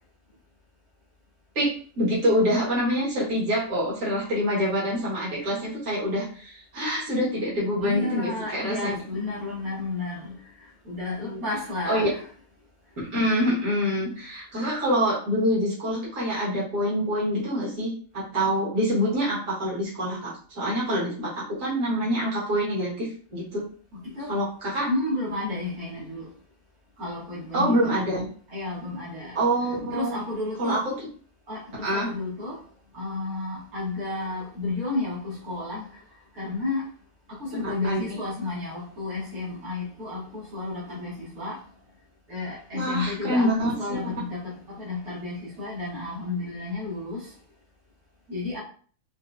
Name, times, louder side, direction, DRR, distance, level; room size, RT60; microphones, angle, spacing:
voice 1, 1.6-8.9 11.2-11.5 11.9-12.1 13.1-23.6 24.3-24.9 27.5-28.3 29.4-30.2 30.6-30.9 31.8-32.1 37.5-38.2 42.7-44.0, equal, 65° right, 1.9 m, -26 dB
voice 2, 7.8-12.3 23.9-24.4 24.9-26.3 27.0-28.0 28.5-29.4 29.9-30.8 31.5-32.6 32.9-36.0 36.3-36.9 37.3-41.6 42.3-47.4 48.3-48.6, left 2 dB, 85° right, 1.8 m, -32 dB
4.6 x 2.2 x 2.5 m
omnidirectional pair, 1.5 m